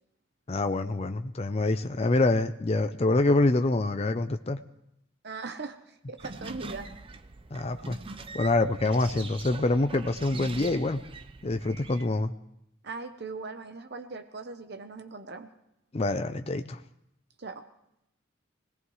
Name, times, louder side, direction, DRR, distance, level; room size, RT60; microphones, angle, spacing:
voice 1, 0.5-4.6 7.5-8.0 8.3-11.0 11.4-12.3 15.9-16.8, left 2 dB, 30° left, 8 dB, 0.5 m, -26 dB
voice 2, 5.2-6.9 12.8-15.5 17.4-17.6, right 4 dB, 55° right, 8 dB, 0.9 m, -40 dB
sound 1, 6.2-12.1, right 3 dB, 25° right, 0.6 m, -43 dB
25.5 x 18.0 x 3.2 m, 0.79 s
head